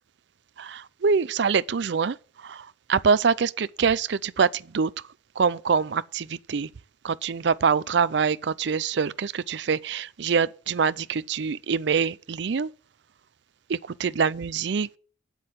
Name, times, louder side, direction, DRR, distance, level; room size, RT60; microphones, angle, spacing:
voice 1, 0.6-4.9 5.4-6.7 7.0-12.7 13.7-14.9, right 5 dB, 60° right, 0.5 m, -25 dB
8.1 x 7.7 x 7.9 m
head